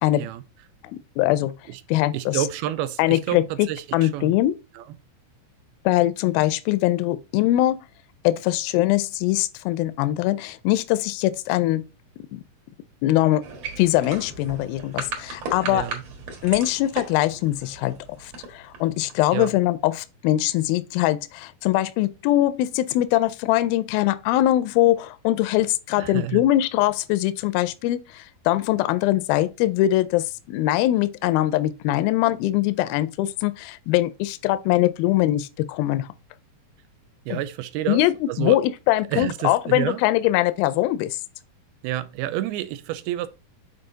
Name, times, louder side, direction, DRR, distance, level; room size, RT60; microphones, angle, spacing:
voice 1, 0.9-1.5 1.9-2.4 3.0-3.7 3.9-4.6 5.9-7.8 8.2-11.8 12.3-12.4 13.0-13.5 13.8-15.9 16.4-36.1 37.3-37.4 37.9-41.2, left 15 dB, 80° left, 2.2 m, -22 dB
voice 2, 2.1-4.4 4.8-4.9 15.7-16.0 19.3-19.6 26.0-26.5 37.3-38.6 39.1-40.0 41.8-43.3, right 13 dB, 85° right, 2.5 m, -29 dB
sound 1, 13.4-19.2, right 4 dB, 55° right, 1.9 m, -36 dB
6.8 x 3.8 x 3.9 m
omnidirectional pair, 4.5 m